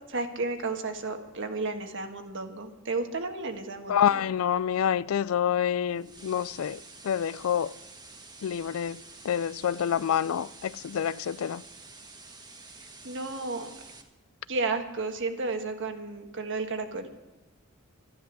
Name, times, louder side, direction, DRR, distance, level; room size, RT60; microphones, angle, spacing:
voice 1, 0.1-4.2 13.0-13.7 14.5-17.2, right 3 dB, 60° right, 1.5 m, -32 dB
voice 2, 3.9-6.8 7.0-7.7 8.4-9.0 9.2-11.6, left 9 dB, 65° left, 0.4 m, -27 dB
sound 1, 5.9-14.0, right 3 dB, 20° right, 1.5 m, -49 dB
12.5 x 12.0 x 6.2 m
head